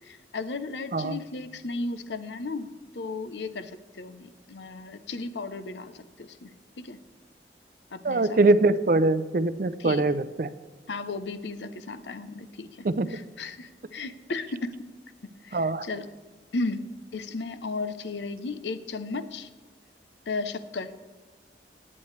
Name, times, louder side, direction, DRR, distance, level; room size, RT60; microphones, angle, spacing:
voice 1, 0.0-7.0 7.9-8.4 9.8-10.1 10.9-14.7 15.4-16.1 16.5-19.5 20.3-21.0, left 3 dB, 80° left, 11 dB, 0.7 m, -35 dB
voice 2, 8.0-10.5 12.8-13.1 15.5-15.8, right 2 dB, 50° right, 13 dB, 0.5 m, -23 dB
19.5 x 8.6 x 3.2 m, 1.4 s
head